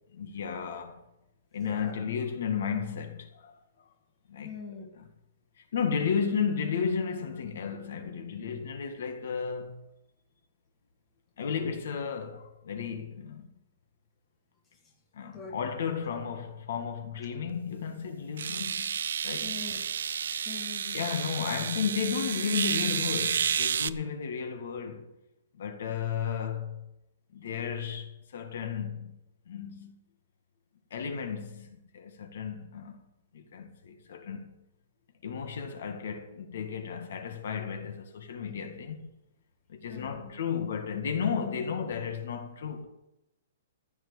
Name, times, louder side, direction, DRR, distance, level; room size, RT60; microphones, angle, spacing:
voice 1, 0.1-1.0 1.5-3.6 4.3-4.5 5.6-9.8 11.4-13.5 15.1-19.0 19.2-19.5 20.9-25.1 25.5-26.9 27.3-29.2 29.5-30.0 30.9-33.1 33.3-34.5 35.2-39.1 39.7-42.8, left 6 dB, 60° left, 2.0 m, -33 dB
voice 2, 1.6-2.1 4.4-4.9 15.3-15.6 19.4-19.8 20.4-21.0 39.9-40.3, left 5 dB, 10° left, 1.7 m, -43 dB
sound 1, 17.5-17.6 18.4-23.9, right 7 dB, 80° right, 0.6 m, -31 dB
15.0 x 6.2 x 8.8 m
hypercardioid pair, 180°, 0 cm